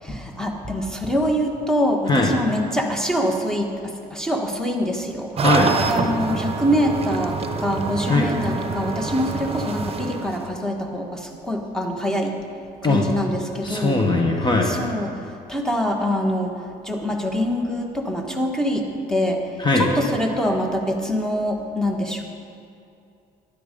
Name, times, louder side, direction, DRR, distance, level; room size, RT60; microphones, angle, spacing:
voice 1, 0.0-5.4 5.9-12.4 12.8-14.0 14.7-15.1 15.5-19.4 19.7-22.2, equal, 5° left, 2 dB, 1.6 m, -24 dB
voice 2, 5.4-5.7 8.1-8.3 12.8-13.0 13.6-14.7 19.6-19.9, left 2 dB, 25° left, 1 dB, 1.4 m, -19 dB
sound 1, 5.4-10.5, right 5 dB, 35° right, 0.9 m, -26 dB
12.5 x 10.5 x 5.3 m, 2.5 s
cardioid pair, 110°, 17 cm